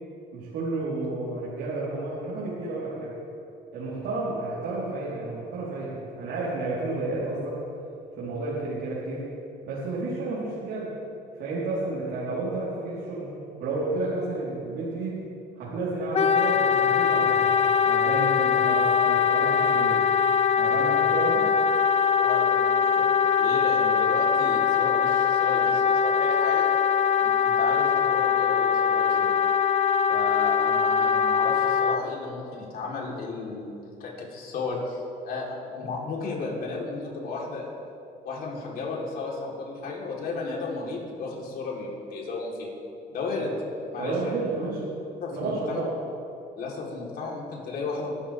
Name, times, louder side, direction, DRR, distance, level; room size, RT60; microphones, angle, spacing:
voice 1, 0.3-3.2 3.7-7.6 8.2-9.2 9.7-10.9 11.4-13.3 13.6-15.2 15.6-17.5 17.8-20.0 20.6-21.5 44.0-44.8 45.3-45.9, right 2 dB, 80° right, -9 dB, 4.4 m, -31 dB
Wind instrument woodwind instrument, 16.1-32.0, left 7 dB, 35° left, 0.6 m, -22 dB
voice 2, 22.2-23.1 23.4-26.7 27.2-29.3 30.1-37.7 38.3-42.7 43.1-43.5 43.9-44.5 45.2-45.8 46.6-48.1, left 3 dB, 60° left, -3 dB, 4.1 m, -34 dB
24.0 x 12.5 x 3.7 m, 2.7 s
cardioid pair, 110°, 17 cm